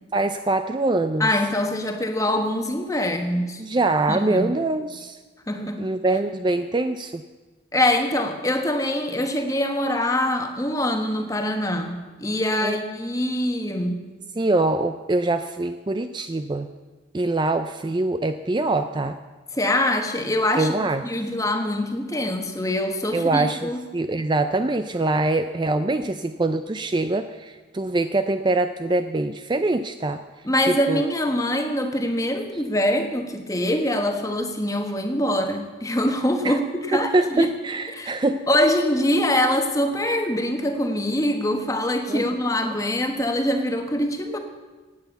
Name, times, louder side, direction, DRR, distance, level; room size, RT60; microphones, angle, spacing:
voice 1, 0.1-1.3 3.6-5.2 5.8-7.2 12.6-12.8 14.4-16.7 17.1-19.2 20.6-21.0 23.1-30.2 30.6-31.0 36.4-36.6 36.9-38.4 42.1-42.2 42.6-42.8, right 2 dB, 25° right, 9 dB, 0.4 m, -24 dB
voice 2, 1.2-3.6 4.1-4.5 5.5-5.9 7.7-14.0 19.5-23.8 30.4-37.5 37.9-44.4, left 1 dB, 15° left, 5 dB, 1.2 m, -24 dB
17.0 x 9.2 x 7.0 m, 1.3 s
head